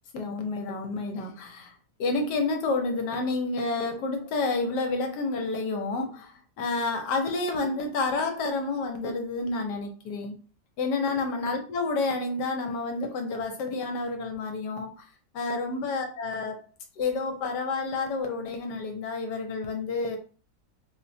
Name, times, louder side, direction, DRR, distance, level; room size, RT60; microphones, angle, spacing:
voice 1, 0.1-10.3 10.8-15.1 15.3-16.6 17.0-20.2, left 3 dB, 75° left, 4 dB, 1.3 m, -29 dB
4.2 x 2.2 x 2.6 m, 0.37 s
omnidirectional pair, 1.8 m